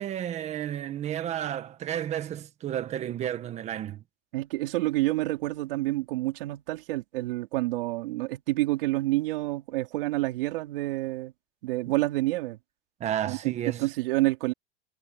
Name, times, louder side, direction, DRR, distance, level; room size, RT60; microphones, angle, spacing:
voice 1, 0.0-4.0 13.0-13.9, right 11 dB, 20° right, 1.4 m, -32 dB
voice 2, 4.3-11.3 11.6-12.6 13.3-14.5, right 19 dB, 65° right, 4.6 m, -28 dB
supercardioid pair, 170°, 30 cm